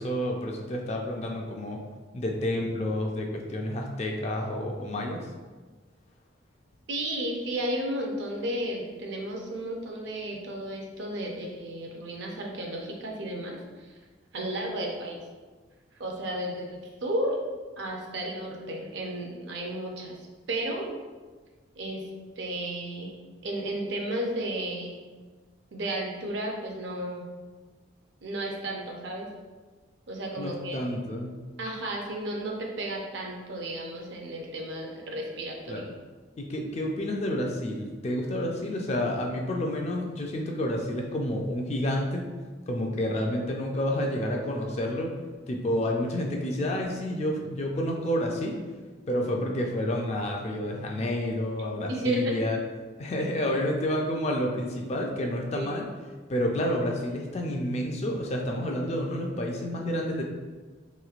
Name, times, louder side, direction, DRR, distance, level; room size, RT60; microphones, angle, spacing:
voice 1, 0.0-1.8 2.1-5.3 30.4-31.3 35.7-35.9 36.4-42.2 42.7-45.1 45.5-48.6 49.1-52.6 53.0-55.9 56.3-60.2, left 1 dB, 35° left, 1 dB, 0.3 m, -29 dB
voice 2, 6.9-13.9 14.3-15.2 16.0-17.4 17.8-20.2 20.5-20.9 21.8-22.1 22.4-25.0 25.7-27.3 28.2-29.3 30.1-30.9 31.6-35.9 51.9-52.4 55.5-55.7, right 1 dB, 60° right, 0 dB, 0.5 m, -33 dB
3.4 x 3.0 x 2.4 m, 1.4 s
head